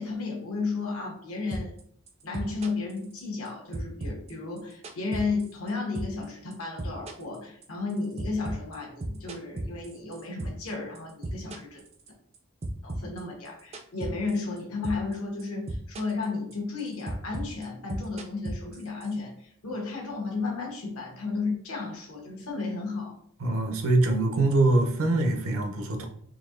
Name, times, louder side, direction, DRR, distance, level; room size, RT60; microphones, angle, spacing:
voice 1, 0.0-1.7 2.2-11.8 12.8-23.2, left 3 dB, 80° left, 0 dB, 1.0 m, -33 dB
sound 1, 1.5-3.5 3.7-5.7 6.0-6.3 6.5-10.7 11.0-12.4 12.6-14.6 14.8-15.1 15.4-16.3 16.5-19.1, right 1 dB, 30° right, 0.3 m, -35 dB
voice 2, 23.4-26.1, right 2 dB, 75° right, 5 dB, 0.6 m, -23 dB
3.9 x 2.7 x 2.5 m, 0.64 s
head